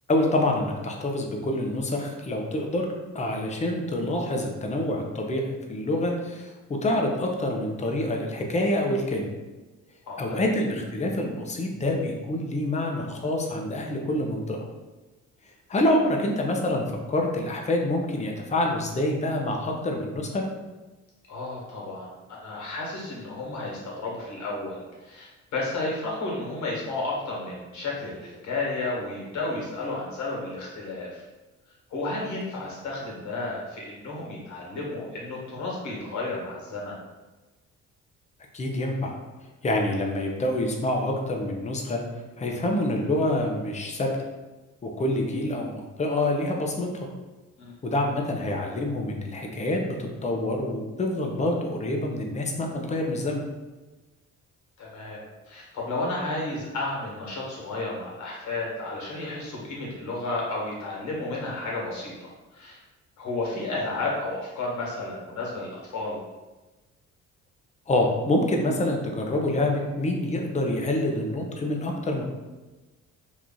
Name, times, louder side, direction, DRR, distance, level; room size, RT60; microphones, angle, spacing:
voice 1, 0.1-2.9 3.1-9.3 10.2-14.6 15.7-20.4 38.5-39.1 39.6-42.0 42.4-44.1 44.8-47.1 47.8-53.4 67.9-72.2, left 1 dB, 25° left, 1 dB, 0.6 m, -26 dB
voice 2, 10.1-10.4 21.3-22.1 22.4-31.2 31.9-37.0 47.6-47.7 54.8-62.8 63.2-66.2, left 2 dB, 70° left, -3 dB, 1.3 m, -32 dB
3.0 x 2.4 x 3.8 m, 1.2 s
cardioid pair, 90°, 30 cm